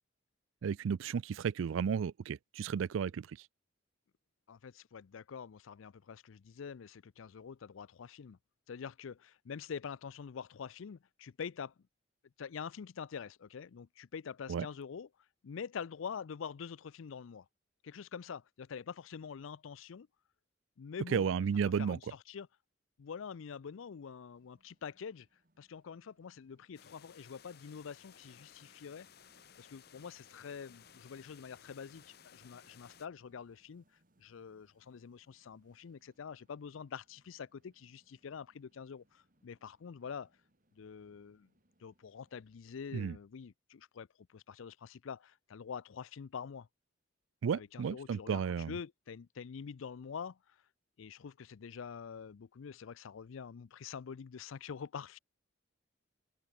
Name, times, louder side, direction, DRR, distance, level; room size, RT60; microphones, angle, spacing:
voice 1, 0.6-3.4 14.5-14.7 21.1-22.0 42.9-43.2 47.4-48.7, right 7 dB, 75° right, 0.4 m, -33 dB
voice 2, 4.5-8.4 8.7-11.7 12.4-15.1 15.4-17.5 17.8-20.1 20.8-21.3 21.8-22.5 23.0-25.3 25.6-29.1 29.6-33.8 34.2-40.3 40.7-41.5 41.8-46.7 47.5-48.4 48.7-50.6 51.0-55.2, left 6 dB, 80° left, 0.4 m, -46 dB
sound 1, 24.3-42.6, right 1 dB, 40° right, 4.0 m, -75 dB
sound 2, 26.7-33.1, left 8 dB, 50° left, 0.9 m, -59 dB
open air
head